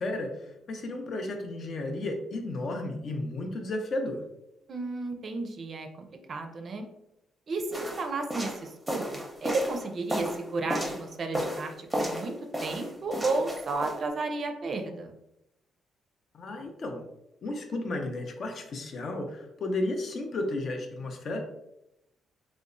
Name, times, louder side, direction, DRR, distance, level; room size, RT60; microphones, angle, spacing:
voice 1, 0.0-4.2 16.3-17.0 17.4-21.4, left 2 dB, 55° left, 4 dB, 0.5 m, -33 dB
voice 2, 4.7-6.8 7.5-12.3 12.6-15.1, right 3 dB, 50° right, 4 dB, 0.4 m, -33 dB
sound 1, 7.7-11.0 11.3-12.3 12.5-14.0, equal, 5° right, 0.6 m, -33 dB
2.9 x 2.0 x 2.5 m, 0.85 s
cardioid pair, 90°, 0 cm